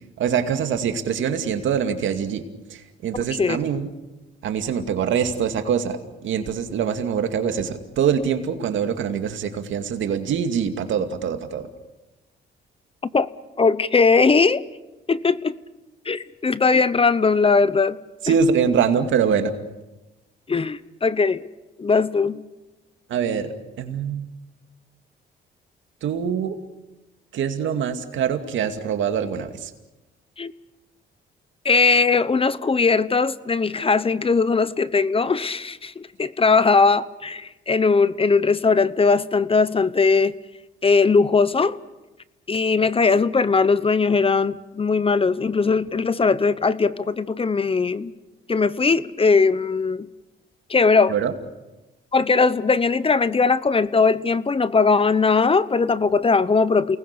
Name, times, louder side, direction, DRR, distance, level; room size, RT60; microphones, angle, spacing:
voice 1, 0.2-2.4 2.7-3.9 4.4-11.7 18.2-19.5 23.1-24.3 26.0-26.6 27.3-29.7 51.1-51.3, right 7 dB, 75° right, 6 dB, 2.4 m, -24 dB
voice 2, 13.6-14.6 15.1-15.6 16.1-18.0 20.5-21.4 21.8-22.4 30.4-30.5 31.6-40.4 40.8-41.8 42.5-48.1 48.5-50.1 50.7-51.1 52.1-57.0, left 4 dB, 30° left, 16 dB, 0.9 m, -19 dB
29.0 x 19.5 x 6.9 m, 1.0 s
cardioid pair, 90°, 20 cm